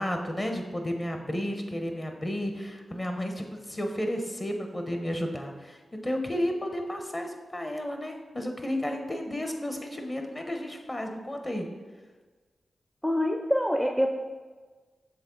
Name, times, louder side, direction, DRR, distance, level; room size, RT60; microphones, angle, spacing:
voice 1, 0.0-11.7, left 1 dB, 30° left, 4 dB, 1.1 m, -32 dB
voice 2, 13.0-14.1, equal, 5° left, 3 dB, 0.5 m, -25 dB
7.1 x 3.7 x 4.0 m, 1.4 s
cardioid pair, 45°, 0 cm